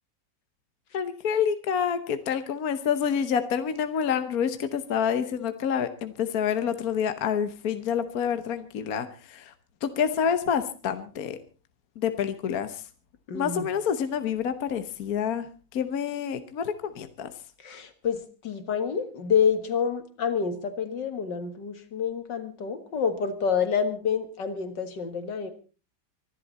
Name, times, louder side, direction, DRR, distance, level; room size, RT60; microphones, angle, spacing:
voice 1, 0.9-9.5 9.8-11.4 12.0-12.8 13.3-17.3, left 7 dB, 60° left, 10 dB, 1.4 m, -28 dB
voice 2, 13.3-13.7 17.6-25.5, left 6 dB, 75° left, 9 dB, 2.4 m, -28 dB
25.0 x 11.5 x 4.1 m, 0.35 s
omnidirectional pair, 1.9 m